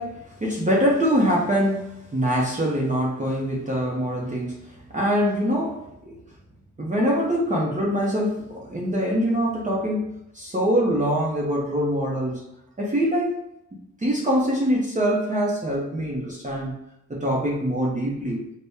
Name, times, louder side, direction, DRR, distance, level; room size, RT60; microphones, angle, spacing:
voice 1, 0.0-6.2 6.8-12.5 12.8-13.5 14.0-16.8 17.1-18.4, equal, 25° right, -3 dB, 0.7 m, -24 dB
4.0 x 2.2 x 3.5 m, 0.80 s
wide cardioid pair, 100°, 32 cm